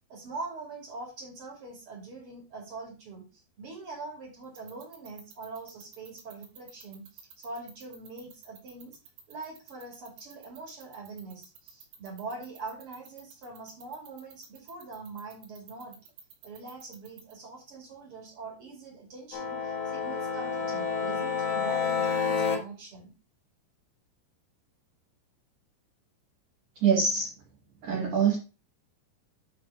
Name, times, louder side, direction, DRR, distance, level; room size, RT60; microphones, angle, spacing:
voice 1, 0.1-9.0 9.3-16.0 16.4-23.1, right 3 dB, 40° right, 0 dB, 2.5 m, -43 dB
sound 1, 4.4-17.3, right 11 dB, 80° right, 4.1 m, -49 dB
sound 2, 19.3-22.6, left 6 dB, 90° left, 3.8 m, -29 dB
voice 2, 26.8-27.3 27.8-28.4, right 6 dB, 60° right, -2 dB, 2.3 m, -24 dB
9.6 x 3.6 x 4.9 m, 0.32 s
omnidirectional pair, 5.3 m